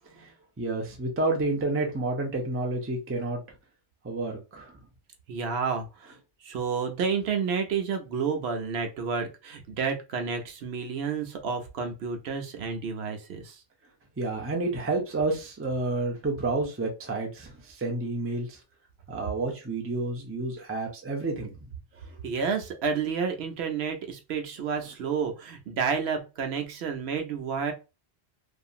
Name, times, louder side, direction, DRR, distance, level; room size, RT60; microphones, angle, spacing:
voice 1, 0.6-3.4 4.0-4.8 14.2-18.6 19.1-21.5 22.1-22.2, right 2 dB, 20° right, 0.4 m, -30 dB
voice 2, 5.3-6.2 6.4-13.6 22.2-27.7, right 6 dB, 75° right, 0.8 m, -30 dB
2.8 x 2.4 x 2.3 m
omnidirectional pair, 1.1 m